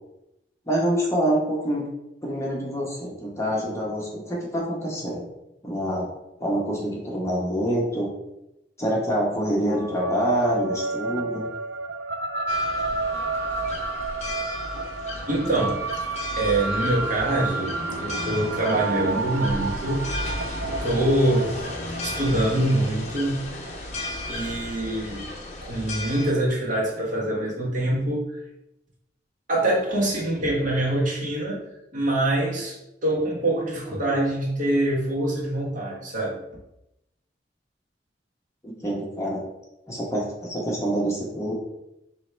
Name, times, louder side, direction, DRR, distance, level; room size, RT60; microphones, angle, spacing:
voice 1, 0.7-1.9 2.2-5.2 5.6-6.1 6.4-8.1 8.8-11.5 38.6-39.4 39.9-41.5, equal, 15° left, -4 dB, 1.0 m, -26 dB
sound 1, 9.7-24.4, right 3 dB, 70° right, 0.4 m, -31 dB
sound 2, 12.5-26.3, left 1 dB, 40° left, 0.7 m, -34 dB
voice 2, 15.3-15.8 16.4-20.1 20.8-21.5 21.8-23.4 24.3-25.2 25.6-28.4 29.5-31.6 31.9-36.4, right 1 dB, 50° right, -4 dB, 1.2 m, -24 dB
4.5 x 3.1 x 3.3 m, 0.87 s
head